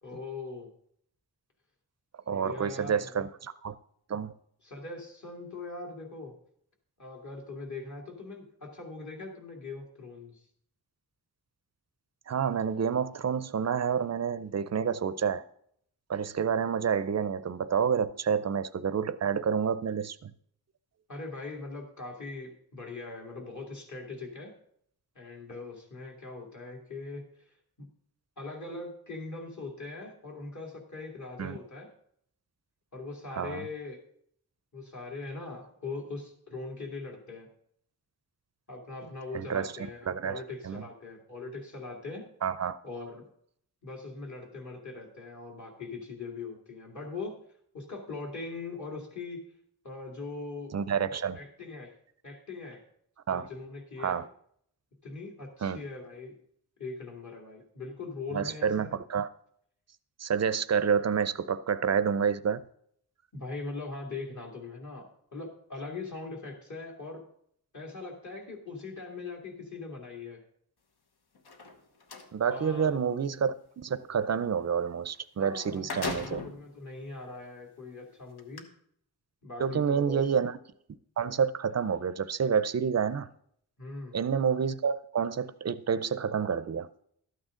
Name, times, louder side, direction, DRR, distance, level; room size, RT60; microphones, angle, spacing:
voice 1, 0.0-0.7 2.3-3.2 4.6-6.4 7.0-10.4 21.1-24.5 25.1-27.3 27.8-27.9 28.4-31.9 32.9-34.0 34.7-37.5 38.7-42.3 42.8-43.2 43.8-47.4 47.7-49.4 49.8-50.7 51.3-52.0 52.2-52.8 53.3-54.2 55.0-56.4 56.8-59.0 63.3-67.3 67.7-70.4 72.5-73.0 75.4-78.7 79.4-80.3 83.8-84.2, left 3 dB, 45° left, 2.4 m, -41 dB
voice 2, 2.3-3.7 4.1-4.3 12.3-15.4 16.1-20.3 31.4-31.6 33.3-33.6 39.3-39.7 40.1-40.8 42.4-42.8 50.7-51.4 53.3-53.5 54.0-54.3 55.6-55.8 58.3-59.3 60.2-62.6 72.3-76.4 79.6-80.6 81.2-83.3 84.1-86.9, right 7 dB, 45° right, 0.5 m, -29 dB
sound 1, 71.3-72.3 75.1-75.2 75.6-76.6 77.3-77.4 78.4-78.6, left 4 dB, 75° left, 1.2 m, -37 dB
12.5 x 9.0 x 3.7 m
wide cardioid pair, 140°, 39 cm